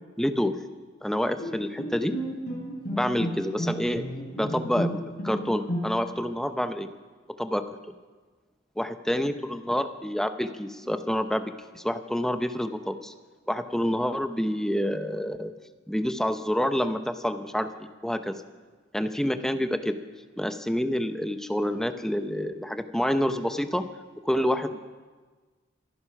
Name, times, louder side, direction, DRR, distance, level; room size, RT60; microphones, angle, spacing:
voice 1, 0.2-0.6 1.0-2.1 2.9-4.0 4.3-6.9 7.4-7.7 8.8-13.1 13.5-15.5 15.9-18.3 18.9-19.9 20.4-23.8 24.2-24.8, equal, ahead, 8 dB, 0.8 m, -28 dB
Bowed string instrument, 1.4-6.3, equal, 55° left, 5.0 m, -33 dB
26.0 x 9.5 x 5.8 m, 1.4 s
head